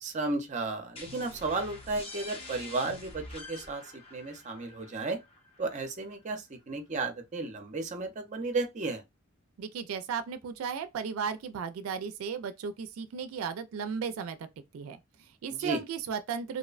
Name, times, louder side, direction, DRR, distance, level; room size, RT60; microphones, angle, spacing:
voice 1, 0.0-3.8 4.1-5.2 5.6-9.0 15.5-15.8, right 3 dB, 35° right, 0.5 m, -33 dB
sound 1, 1.0-6.4, left 2 dB, 30° left, 0.7 m, -47 dB
voice 2, 9.6-14.5 14.7-16.6, right 6 dB, 85° right, 0.3 m, -35 dB
2.6 x 2.1 x 2.3 m
head